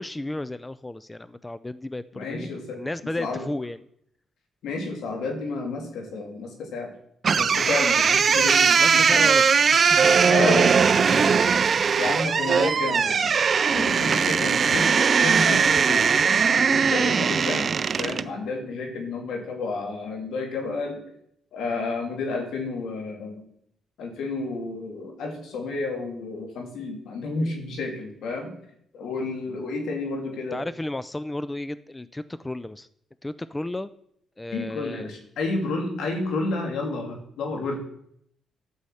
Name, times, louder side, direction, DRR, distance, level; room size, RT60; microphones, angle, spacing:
voice 1, 0.0-3.8 8.8-9.4 9.7-11.6 14.7-14.8 30.5-32.9 33.2-33.9 34.4-35.1, left 1 dB, 15° left, 15 dB, 0.4 m, -33 dB
voice 2, 2.1-3.5 4.6-6.9 7.3-9.3 10.3-10.7 12.0-13.3 13.7-21.0 21.5-23.4 24.0-28.5 28.9-30.6 34.5-37.8, left 3 dB, 75° left, 2 dB, 2.9 m, -31 dB
sound 1, 7.2-18.3, right 6 dB, 45° right, 0.4 m, -20 dB
11.5 x 5.6 x 7.8 m, 0.71 s
cardioid pair, 90°, 0 cm